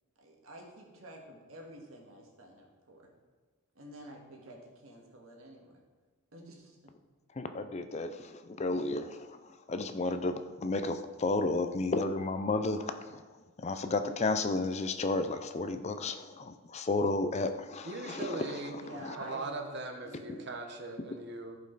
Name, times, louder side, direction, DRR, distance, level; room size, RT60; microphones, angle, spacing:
voice 1, 0.2-3.1 3.8-5.8 6.3-6.7 18.8-19.5 20.0-20.6, right 1 dB, 70° right, 0 dB, 1.9 m, -49 dB
voice 2, 7.4-10.3 10.6-13.2 13.6-18.6 18.9-19.2 20.3-20.5, left 2 dB, 30° left, 9 dB, 0.5 m, -32 dB
voice 3, 17.8-18.8 19.1-21.6, right 2 dB, 55° right, 4 dB, 1.2 m, -40 dB
15.0 x 5.3 x 4.0 m, 1.4 s
head